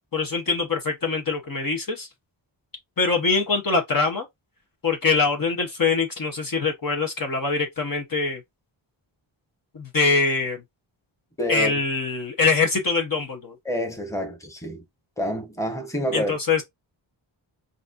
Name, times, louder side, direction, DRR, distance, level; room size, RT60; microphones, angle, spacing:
voice 1, 0.1-2.1 3.0-4.2 4.8-8.4 9.7-10.6 11.5-13.6 16.1-16.6, left 4 dB, 45° left, 1.0 m, -23 dB
voice 2, 11.4-11.7 13.6-14.8 15.2-16.4, left 1 dB, 5° left, 1.1 m, -27 dB
4.0 x 2.5 x 2.5 m
cardioid pair, 70°, 47 cm